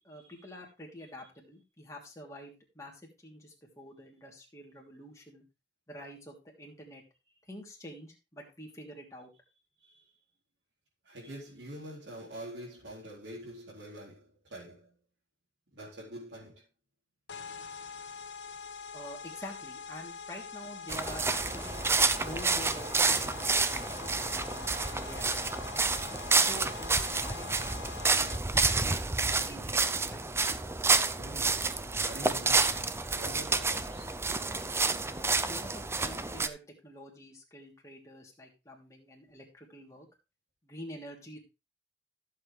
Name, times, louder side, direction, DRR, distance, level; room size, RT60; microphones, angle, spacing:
voice 1, 0.0-5.4 5.9-7.0 7.5-9.3 18.9-21.8 22.2-26.0 26.4-27.6 28.5-30.4 35.5-40.1 40.6-41.4, equal, 15° left, 3.0 m, -47 dB
voice 2, 9.8-10.1 11.0-14.9 15.7-16.7 31.1-34.2, right 1 dB, 75° right, 4.2 m, -46 dB
sound 1, 17.3-28.7, left 5 dB, 80° left, 1.5 m, -44 dB
sound 2, 20.9-36.5, right 3 dB, 15° right, 0.6 m, -29 dB
14.5 x 7.6 x 3.3 m
head